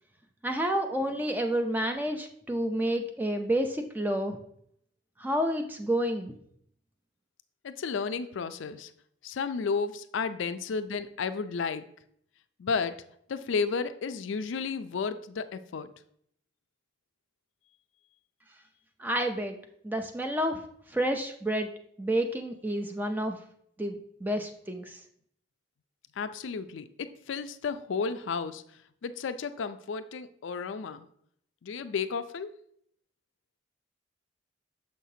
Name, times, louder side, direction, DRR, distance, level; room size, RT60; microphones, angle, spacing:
voice 1, 0.4-4.4 5.2-6.3 19.0-19.5 19.8-20.6 20.9-21.7 22.0-23.4 23.8-25.0, right 1 dB, 10° right, 5 dB, 0.5 m, -29 dB
voice 2, 7.6-8.9 9.2-11.8 12.6-13.0 13.3-15.9 26.2-28.6 29.0-31.1 31.6-32.5, left 5 dB, 75° left, 11 dB, 0.4 m, -32 dB
6.6 x 5.7 x 2.7 m, 0.68 s
head